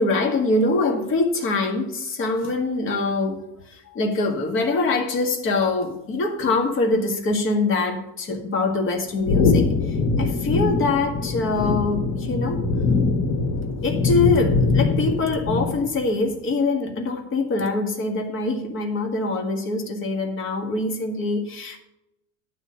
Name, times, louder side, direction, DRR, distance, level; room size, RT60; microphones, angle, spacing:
voice 1, 0.0-9.7 10.2-12.6 13.8-21.8, left 3 dB, 35° left, 3 dB, 1.9 m, -24 dB
sound 1, 9.2-16.0, left 3 dB, 85° left, 2.8 m, -22 dB
11.5 x 4.1 x 7.7 m, 0.85 s
cardioid pair, 155°, 34 cm